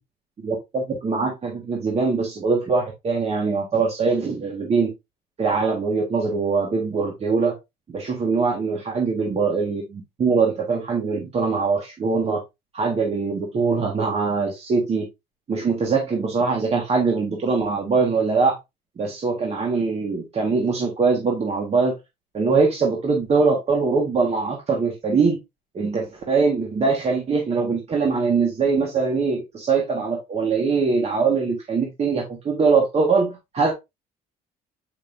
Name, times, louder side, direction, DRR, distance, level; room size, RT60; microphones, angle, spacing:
voice 1, 0.4-4.9 5.4-7.6 7.9-12.4 12.7-15.1 15.5-18.6 19.0-21.9 22.3-25.4 25.7-33.7, right 4 dB, 40° right, 1 dB, 1.6 m, -22 dB
7.3 x 5.2 x 2.6 m, 0.21 s
cardioid pair, 110°, 17 cm